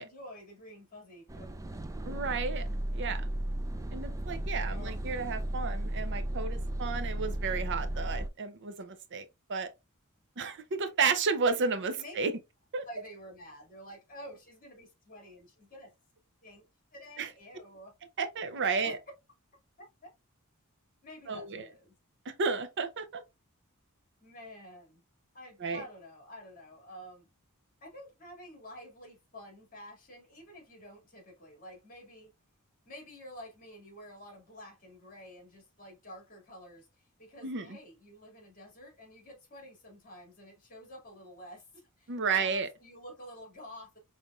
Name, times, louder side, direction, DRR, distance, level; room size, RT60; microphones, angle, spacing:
voice 1, 0.0-1.6 4.7-5.0 11.5-11.6 12.0-12.3 12.8-15.9 16.4-16.7 16.9-18.0 18.8-19.0 19.8-20.1 21.0-21.9 24.2-25.0 25.3-27.3 27.8-32.3 32.9-44.0, equal, 40° left, 2.2 m, -49 dB
sound 1, 1.3-8.3, right 1 dB, 15° right, 0.4 m, -34 dB
voice 2, 2.0-2.6 2.9-3.3 3.9-9.2 9.5-9.7 10.4-12.3 12.7-12.9 17.2-17.3 18.2-19.0 21.3-21.6 22.3-23.2 25.6-25.8 37.4-37.7 42.1-42.7, right 5 dB, 55° right, 0.6 m, -32 dB
5.3 x 3.3 x 2.4 m
head